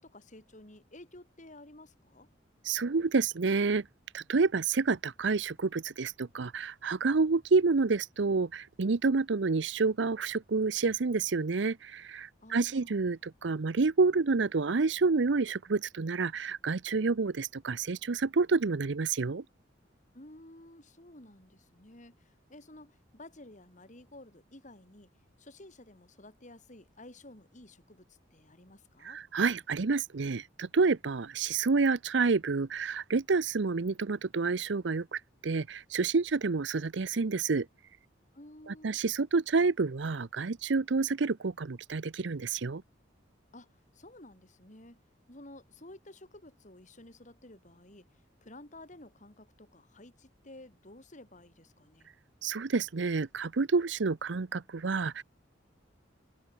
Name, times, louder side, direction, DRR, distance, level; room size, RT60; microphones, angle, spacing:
voice 1, 0.0-2.3 12.4-13.0 20.1-25.1 25.4-29.2 38.3-39.0 43.5-45.0 45.3-52.1, left 1 dB, 40° left, 4.2 m, -53 dB
voice 2, 2.6-3.9 4.1-19.4 29.0-37.7 38.7-42.8 52.4-55.2, right 4 dB, 70° right, 0.7 m, -29 dB
head